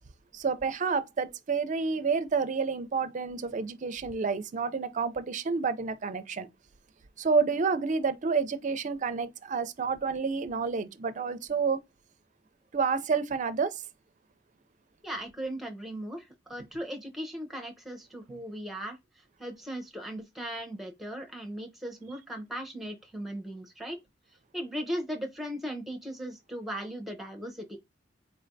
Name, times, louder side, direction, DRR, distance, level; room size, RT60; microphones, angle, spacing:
voice 1, 0.3-6.5 7.2-11.8 12.7-13.8, right 5 dB, 40° right, 0.4 m, -29 dB
voice 2, 15.0-19.0 19.4-24.0 24.5-27.8, equal, ahead, 0.8 m, -37 dB
4.3 x 3.3 x 2.6 m
head